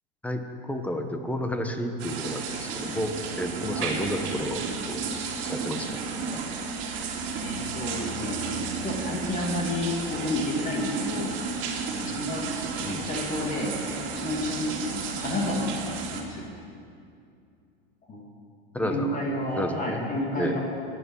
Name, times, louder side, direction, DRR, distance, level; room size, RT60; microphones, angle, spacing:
voice 1, 0.2-5.0 5.4-6.0 6.3-6.4 12.8-13.0 18.7-19.2 19.6-20.0 20.4-20.6, equal, 5° left, 6 dB, 1.2 m, -31 dB
sound 1, 2.0-16.2, right 4 dB, 40° right, 2.4 m, -32 dB
voice 2, 7.4-8.4 8.8-11.3 11.9-12.4 13.1-13.8 14.2-15.7 16.1-16.5 18.1-18.2 18.8-20.6, left 1 dB, 25° left, -2 dB, 2.5 m, -30 dB
23.0 x 9.0 x 5.6 m, 2.4 s
supercardioid pair, 125°, 30 cm